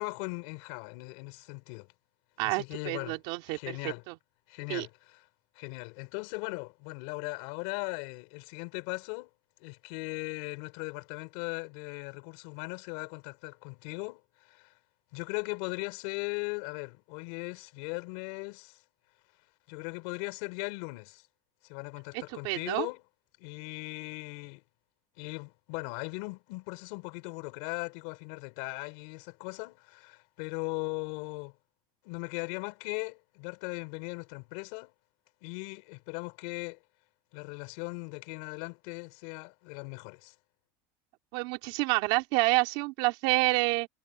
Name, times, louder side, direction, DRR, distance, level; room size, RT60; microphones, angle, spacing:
voice 1, 0.0-1.9 2.4-3.2 3.5-4.0 4.5-5.3 5.5-9.3 9.6-14.7 15.1-18.8 19.7-21.3 21.6-23.0 23.4-24.6 25.2-31.6 32.0-34.9 35.4-36.8 37.3-40.3, left 30 dB, 65° left, 5.4 m, -38 dB
voice 2, 2.4-3.8 4.1-4.2 4.7-4.9 22.1-22.9 41.3-43.9, right 25 dB, 60° right, 3.4 m, -28 dB
cardioid pair, 170°, 10 cm